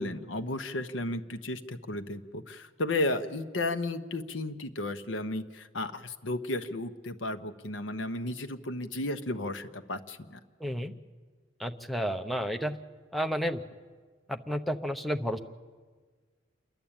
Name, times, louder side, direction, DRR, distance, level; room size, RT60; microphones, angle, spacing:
voice 1, 0.0-10.4, left 2 dB, 75° left, 8 dB, 1.0 m, -34 dB
voice 2, 10.6-10.9 11.6-12.8 13.1-13.6 14.3-15.4, equal, ahead, 5 dB, 0.7 m, -31 dB
27.5 x 11.0 x 8.8 m, 1.5 s
head